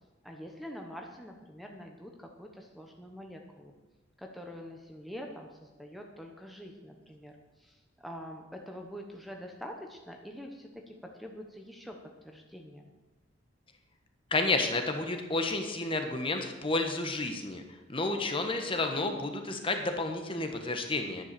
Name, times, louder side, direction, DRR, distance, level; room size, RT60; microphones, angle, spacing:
voice 1, 0.2-3.7 4.2-12.0 12.2-12.9, equal, ahead, 1 dB, 1.1 m, -45 dB
voice 2, 14.3-17.6 17.9-21.2, left 2 dB, 30° left, 5 dB, 1.3 m, -31 dB
10.5 x 10.5 x 6.8 m, 1.1 s
head